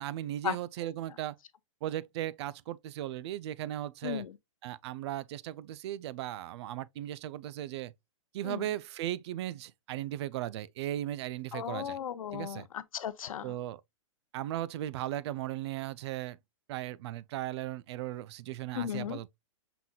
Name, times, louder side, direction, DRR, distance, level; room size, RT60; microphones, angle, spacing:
voice 1, 0.0-1.4 1.8-4.3 4.6-7.9 8.3-12.0 12.3-12.7 13.4-13.8 14.3-16.4 16.7-19.4, right 13 dB, 55° right, 0.4 m, -37 dB
voice 2, 4.0-4.3 8.4-8.6 11.5-13.5 18.7-19.2, left 9 dB, 90° left, 0.6 m, -36 dB
5.8 x 3.8 x 2.3 m
hypercardioid pair, 140°, 17 cm